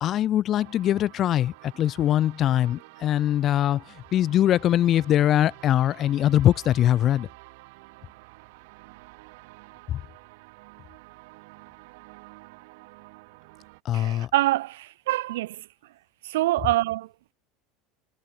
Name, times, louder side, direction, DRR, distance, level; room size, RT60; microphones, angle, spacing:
voice 1, 0.0-7.3 9.9-10.0 13.8-14.3, left 12 dB, 40° left, 0.8 m, -22 dB
sound 1, 0.6-13.8, right 26 dB, 75° right, 6.1 m, -49 dB
voice 2, 13.9-15.7 16.2-17.3, right 17 dB, 90° right, 0.8 m, -26 dB
supercardioid pair, 135°, 0 cm